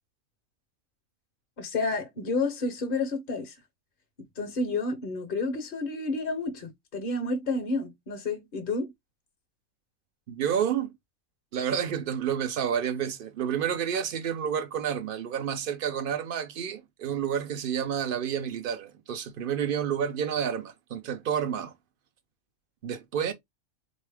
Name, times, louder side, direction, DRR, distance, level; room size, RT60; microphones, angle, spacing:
voice 1, 1.6-3.6 4.4-8.9, left 3 dB, 45° left, 0.8 m, -30 dB
voice 2, 10.3-10.9 11.5-21.7 22.8-23.3, right 8 dB, 55° right, 0.7 m, -30 dB
4.0 x 2.7 x 3.3 m
omnidirectional pair, 1.4 m